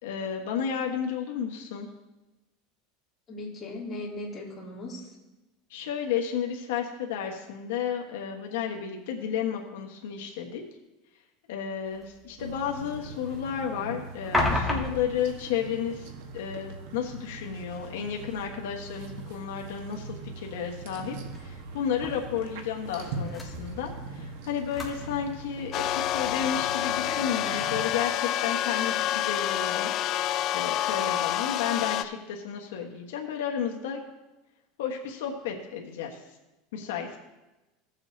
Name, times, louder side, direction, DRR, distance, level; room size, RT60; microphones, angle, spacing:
voice 1, 0.0-1.9 5.7-10.6 11.5-16.1 16.3-29.9 30.5-34.0 34.8-36.2 36.7-37.2, left 8 dB, 85° left, 1 dB, 1.2 m, -32 dB
voice 2, 3.3-5.1, left 2 dB, 20° left, -6 dB, 2.7 m, -38 dB
sound 1, 11.9-27.2, left 2 dB, ahead, 1.4 m, -38 dB
sound 2, 12.4-27.9, right 3 dB, 70° right, 1.2 m, -41 dB
sound 3, 25.7-32.0, left 12 dB, 40° left, 0.4 m, -28 dB
16.5 x 7.2 x 2.7 m, 1.1 s
supercardioid pair, 155°, 0 cm